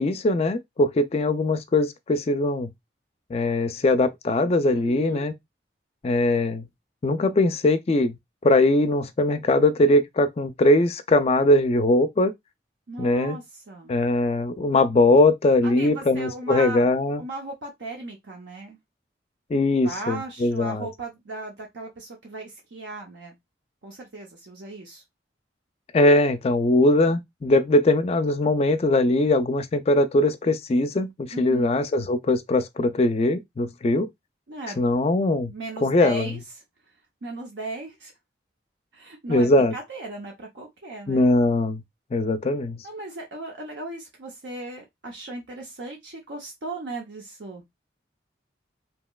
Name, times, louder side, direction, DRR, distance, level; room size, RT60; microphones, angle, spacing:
voice 1, 0.0-2.7 3.3-5.3 6.0-6.7 7.0-8.2 8.4-12.3 13.0-13.4 13.9-17.2 19.5-20.9 25.9-34.1 34.8-35.5 35.8-36.4 39.3-39.8 41.1-41.8 42.1-42.8, left 2 dB, 35° left, 0.3 m, -21 dB
voice 2, 4.7-5.3 12.9-13.9 15.6-16.8 17.2-18.8 19.8-23.3 23.8-25.0 31.3-31.7 34.5-34.8 35.4-36.4 37.2-38.1 38.9-41.3 42.8-47.6, right 2 dB, 80° right, 0.7 m, -37 dB
2.9 x 2.8 x 2.2 m
head